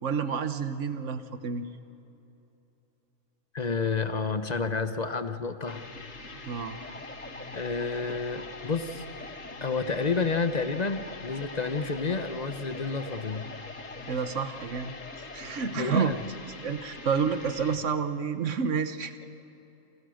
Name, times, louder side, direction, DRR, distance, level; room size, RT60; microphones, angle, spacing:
voice 1, 0.0-1.7 6.5-6.8 14.1-14.9 15.3-16.1 16.6-19.1, right 6 dB, 65° right, 10 dB, 1.5 m, -29 dB
voice 2, 3.5-5.8 7.5-9.0 9.6-13.5 15.7-16.1, left 4 dB, 35° left, 9 dB, 1.1 m, -30 dB
sound 1, 5.7-17.8, left 3 dB, 75° left, 2.3 m, -44 dB
sound 2, 6.5-16.5, left 2 dB, 15° left, 0.3 m, -46 dB
28.0 x 27.5 x 6.5 m, 3.0 s
omnidirectional pair, 1.4 m